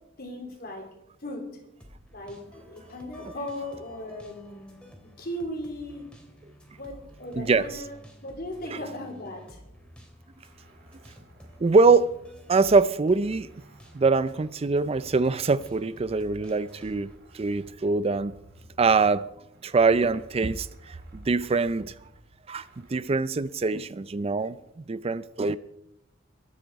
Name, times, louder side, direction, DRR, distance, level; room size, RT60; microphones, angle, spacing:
voice 1, 0.2-0.9 1.2-1.5 2.1-4.8 5.2-6.0 6.7-7.9 8.2-9.6, left 1 dB, 55° left, 3.3 m, -37 dB
sound 1, 1.8-17.2, equal, 5° left, 3.1 m, -51 dB
voice 2, 7.4-7.8 8.7-8.8 11.6-12.1 12.5-13.5 13.9-17.1 17.3-18.3 18.8-19.3 19.6-21.9 22.5-25.6, right 4 dB, 30° right, 0.4 m, -23 dB
sound 2, 9.7-12.9 13.2-15.8 16.3-19.2 19.5-23.0, right 1 dB, 60° right, 4.2 m, -55 dB
22.5 x 9.2 x 4.7 m
head